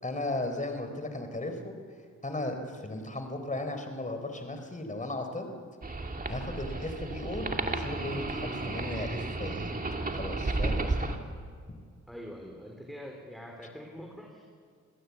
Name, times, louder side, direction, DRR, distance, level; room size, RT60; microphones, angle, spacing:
voice 1, 0.0-1.8 2.2-5.5 6.3-9.7 10.1-11.1 11.7-11.8, left 2 dB, 25° left, 6 dB, 4.0 m, -36 dB
sound 1, 5.8-11.2, right 2 dB, 25° right, 2.4 m, -33 dB
voice 2, 12.1-14.4, equal, ahead, 1 dB, 3.9 m, -44 dB
27.0 x 16.0 x 8.4 m, 2.1 s
cardioid pair, 65°, 31 cm